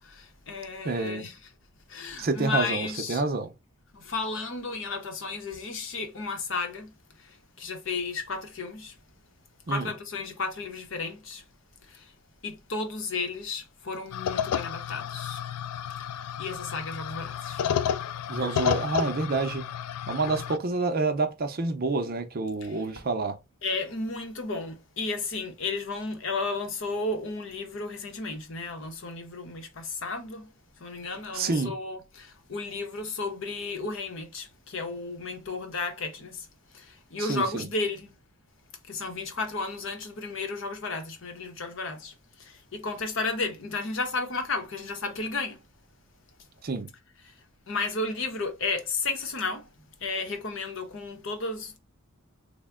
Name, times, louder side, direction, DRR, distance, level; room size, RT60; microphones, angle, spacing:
voice 1, 0.0-1.4 1.9-3.2 3.9-6.9 7.2-9.0 9.7-11.4 11.9-12.1 12.4-15.4 16.0-16.1 16.4-17.6 22.6-22.8 23.6-30.5 30.8-36.5 36.7-38.2 38.8-45.7 47.7-49.7 50.0-51.8, left 3 dB, 60° left, 0.8 m, -33 dB
voice 2, 0.8-1.3 2.2-3.5 9.7-9.9 18.3-19.6 20.1-23.4 31.3-31.7 37.2-37.7 46.6-46.9, right 3 dB, 40° right, 0.5 m, -28 dB
sound 1, 14.1-20.6, left 9 dB, 90° left, 0.3 m, -31 dB
3.4 x 2.1 x 3.5 m
head